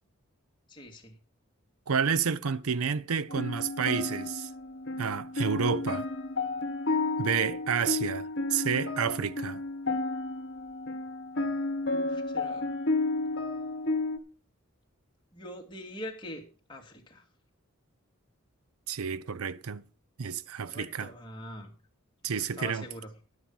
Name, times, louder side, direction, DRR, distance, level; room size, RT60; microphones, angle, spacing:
voice 1, 0.7-1.1 11.8-12.7 15.3-16.4 16.7-17.2 20.6-21.7 22.2-23.1, left 1 dB, 20° left, 2.1 m, -43 dB
voice 2, 1.9-4.5 5.0-6.1 7.2-9.6 18.9-19.8 20.2-21.1 22.2-22.9, right 6 dB, 80° right, 0.6 m, -30 dB
sound 1, 3.3-14.2, left 3 dB, 55° left, 1.3 m, -32 dB
11.5 x 8.9 x 5.4 m
head